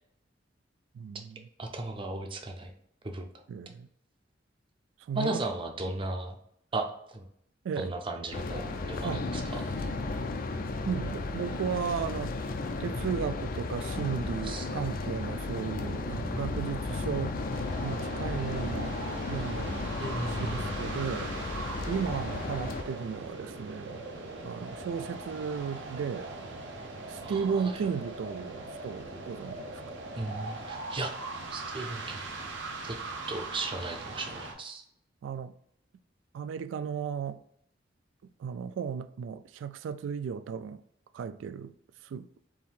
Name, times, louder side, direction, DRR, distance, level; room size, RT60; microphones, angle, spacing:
voice 1, 0.9-1.5 3.5-3.9 5.1-5.4 7.6-7.9 9.0-9.3 10.9-12.3 12.8-17.4 17.8-19.0 19.3-20.0 20.2-21.3 21.9-24.0 24.4-26.4 27.1-29.8 35.2-35.5 36.3-37.4 38.4-40.8 41.1-41.7 42.0-42.3, right 6 dB, 90° right, 0.3 m, -35 dB
voice 2, 1.6-2.7 3.0-3.3 5.1-6.4 6.7-7.3 7.8-9.7 14.5-14.7 20.0-20.7 27.2-27.6 30.2-31.1 31.5-32.2 32.8-33.0 33.3-34.8, right 2 dB, 30° right, 0.6 m, -36 dB
sound 1, 8.3-22.8, left 3 dB, 50° left, 0.4 m, -34 dB
sound 2, 17.5-34.5, right 3 dB, 70° right, 0.8 m, -40 dB
4.5 x 2.7 x 3.6 m
head